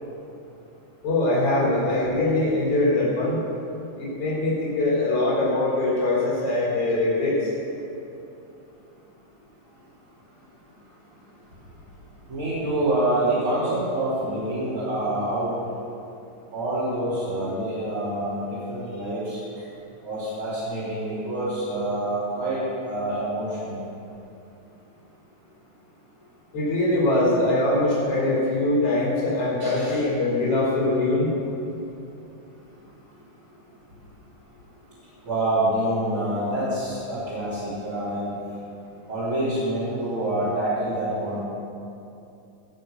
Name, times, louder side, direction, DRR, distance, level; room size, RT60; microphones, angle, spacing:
voice 1, 1.0-3.4 4.0-7.5 26.5-31.3, left 2 dB, 45° left, -7 dB, 4.1 m, -22 dB
voice 2, 12.3-15.6 16.5-19.4 20.0-23.8 29.6-30.0 35.3-38.3 39.1-41.4, right 1 dB, 40° right, -12 dB, 4.2 m, -26 dB
18.0 x 6.8 x 6.8 m, 2.8 s
omnidirectional pair, 3.8 m